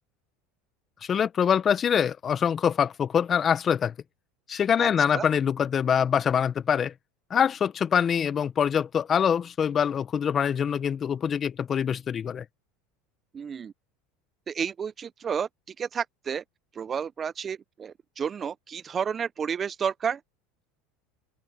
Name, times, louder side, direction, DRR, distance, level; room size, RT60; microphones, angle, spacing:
voice 1, 1.0-3.9 4.5-6.9 7.3-12.4, left 8 dB, 35° left, 0.9 m, -24 dB
voice 2, 4.8-5.3 13.3-13.7 14.5-15.5 15.8-16.4 16.7-20.2, right 7 dB, 30° right, 0.6 m, -31 dB
open air
supercardioid pair, 100°, 0 cm